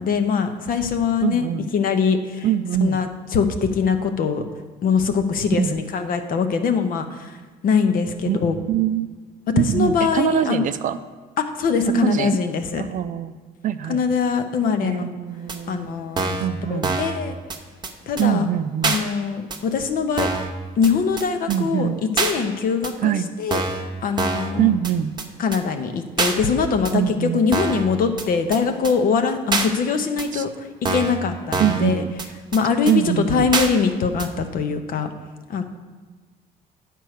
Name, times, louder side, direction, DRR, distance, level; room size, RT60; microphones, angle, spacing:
voice 1, 0.0-2.5 2.8-4.4 4.8-7.4 7.6-8.6 9.6-10.6 11.4-12.8 13.9-15.1 15.7-16.4 16.7-17.4 18.1-18.5 18.8-20.3 20.8-24.7 25.4-32.0 32.5-35.1 35.5-35.6, left 5 dB, 55° left, 7 dB, 0.8 m, -22 dB
voice 2, 1.2-1.7 2.4-3.0 5.5-5.8 8.3-8.4 8.7-9.1 9.5-11.0 11.9-12.4 12.8-13.4 13.6-14.0 14.8-15.9 16.4-17.0 18.2-19.0 21.5-22.0 23.0-23.3 24.6-25.1 26.9-27.5 30.3-30.4 31.6-32.2 32.9-33.5, right 10 dB, 50° right, 11 dB, 0.4 m, -23 dB
sound 1, 15.5-15.6 16.2-16.5 16.8-17.2 17.5-17.6 17.8-17.9 18.2-18.3 18.8-19.0 19.5-19.6 20.2-20.5 20.8-20.9 21.2-21.3 21.5-21.6 22.2-22.3 22.8-22.9 23.5-23.8 24.2-24.5 24.8-24.9 25.2-25.3 25.5-25.6 26.2-26.3 26.8-26.9 27.5-27.8 28.2-28.3 28.5-28.6 28.8-28.9 29.5-29.7 30.2-30.3 30.8-31.2 31.5-31.8 32.2-32.3 32.5-32.6 32.9-33.0 33.5-33.7 34.2-34.3, right 3 dB, 25° right, 0.9 m, -24 dB
9.3 x 4.6 x 6.5 m, 1.4 s
cardioid pair, 110°, 17 cm